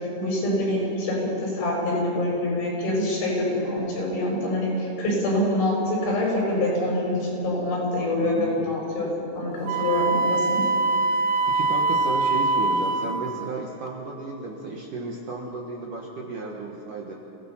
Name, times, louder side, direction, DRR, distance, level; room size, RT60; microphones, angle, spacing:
voice 1, 0.2-10.6, left 1 dB, 75° left, -3 dB, 8.4 m, -25 dB
voice 2, 8.2-8.6 11.5-17.1, right 3 dB, 60° right, -1 dB, 2.3 m, -33 dB
Wind instrument woodwind instrument, 9.7-13.2, right 3 dB, 85° right, 3.4 m, -23 dB
28.0 x 19.0 x 5.7 m, 2.9 s
omnidirectional pair, 5.4 m